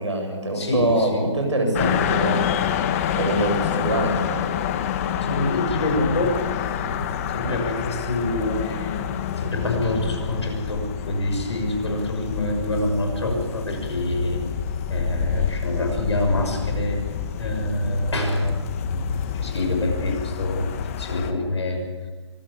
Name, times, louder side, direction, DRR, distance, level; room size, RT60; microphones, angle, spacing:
voice 1, 0.0-2.5 3.1-4.4 6.8-6.9, right 1 dB, 80° right, 2 dB, 7.9 m, -24 dB
voice 2, 0.5-1.3 1.8-2.0 5.2-6.4 6.7-9.0 9.4-14.4 14.9-17.0 17.4-20.7 21.0-21.8, left 1 dB, 70° left, 3 dB, 6.4 m, -26 dB
sound 1, 1.7-21.3, left 8 dB, 30° left, 1.5 m, -28 dB
24.5 x 13.5 x 8.5 m, 1.4 s
figure-of-eight pair, 145°, 15 cm